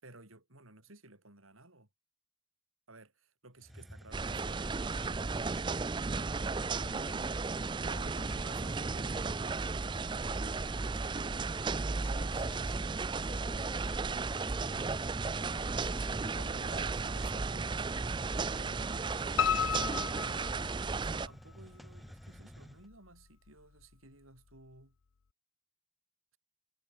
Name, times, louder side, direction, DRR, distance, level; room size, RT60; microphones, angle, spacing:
voice 1, 0.0-1.9 2.9-5.7 6.1-6.3 7.8-11.4 16.3-19.2 19.5-25.0, right 2 dB, 90° right, 7.1 m, -55 dB
Hiss, 3.6-22.9, equal, ahead, 1.9 m, -51 dB
sound 1, 4.1-21.3, right 4 dB, 20° right, 0.4 m, -34 dB
voice 2, 6.8-7.3 7.8-8.3 11.9-16.2 19.7-20.1, left 1 dB, 25° left, 2.6 m, -53 dB
Piano, 19.4-21.3 21.7-22.6 22.9-23.0 23.5-23.6 23.8-23.9, left 8 dB, 80° left, 0.6 m, -33 dB
head